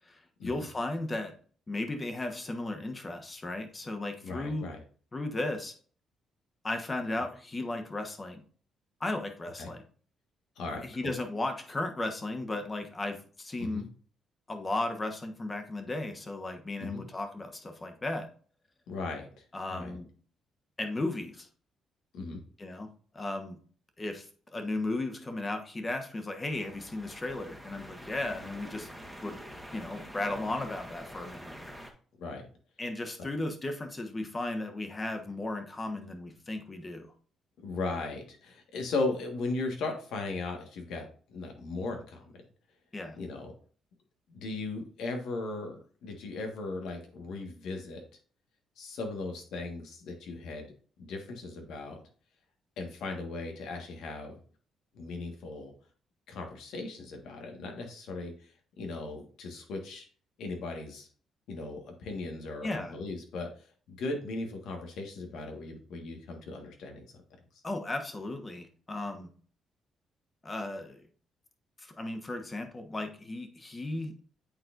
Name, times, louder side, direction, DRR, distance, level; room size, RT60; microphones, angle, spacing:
voice 1, 0.1-1.3 1.7-4.7 5.1-5.7 6.6-8.4 9.0-9.8 10.8-13.9 14.5-18.3 19.5-20.1 20.8-21.5 22.6-22.9 23.1-23.6 24.0-28.9 29.2-29.4 29.7-31.5 32.8-37.1 42.9-43.2 62.6-63.0 67.6-69.3 70.4-71.0 71.8-74.1, left 2 dB, 25° left, 6 dB, 1.3 m, -35 dB
voice 2, 4.2-4.8 9.6-9.7 10.6-11.2 13.6-13.9 16.8-17.0 18.9-19.4 19.7-20.0 22.1-22.4 32.2-32.5 37.6-42.2 43.2-43.5 44.3-48.0 48.8-50.7 51.0-52.0 52.8-54.4 54.9-55.7 56.3-58.5 58.8-60.0 60.4-61.1 61.5-67.0, left 3 dB, 80° left, 3 dB, 1.6 m, -37 dB
sound 1, 26.5-31.9, equal, ahead, 1.2 m, -46 dB
8.7 x 4.3 x 2.6 m, 0.43 s
cardioid pair, 90°, 0 cm